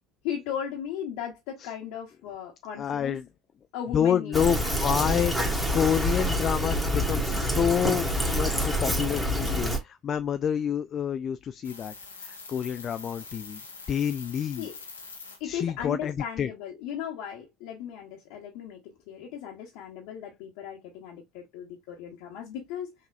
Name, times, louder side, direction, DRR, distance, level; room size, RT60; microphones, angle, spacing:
voice 1, 0.2-3.2 3.7-4.8 14.6-14.8 15.4-22.9, left 9 dB, 60° left, 1.1 m, -37 dB
voice 2, 2.8-3.2 3.9-5.3 5.7-8.1 8.3-13.6 13.9-14.7 15.4-16.5, left 8 dB, 35° left, 0.3 m, -28 dB
Fill (with liquid), 4.3-9.8, equal, 5° right, 1.6 m, -27 dB
sound 1, 11.6-15.4 15.8-15.9, left 4 dB, 80° left, 0.9 m, -44 dB
5.9 x 2.8 x 2.3 m
figure-of-eight pair, 65°, 0 cm